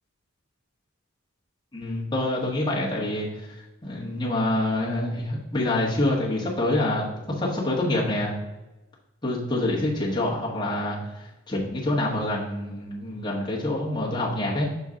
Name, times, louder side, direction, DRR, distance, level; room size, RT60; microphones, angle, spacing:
voice 1, 1.7-3.3 3.8-7.1 7.4-8.3 9.2-11.0 11.5-14.7, left 1 dB, 20° left, -6 dB, 1.5 m, -26 dB
6.0 x 5.4 x 3.7 m, 1.0 s
head